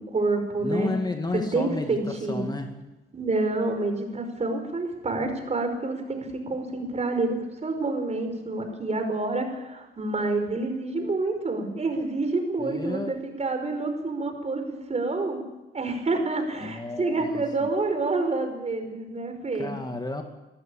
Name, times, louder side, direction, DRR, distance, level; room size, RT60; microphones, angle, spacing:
voice 1, 0.0-0.9 1.5-2.5 3.1-15.4 15.7-19.7, right 3 dB, 35° right, 6 dB, 5.2 m, -28 dB
voice 2, 0.6-2.7 12.6-13.1 16.6-17.7 19.6-20.2, left 2 dB, 20° left, 5 dB, 2.2 m, -32 dB
22.5 x 14.0 x 8.7 m, 1.1 s
cardioid pair, 90°, 20 cm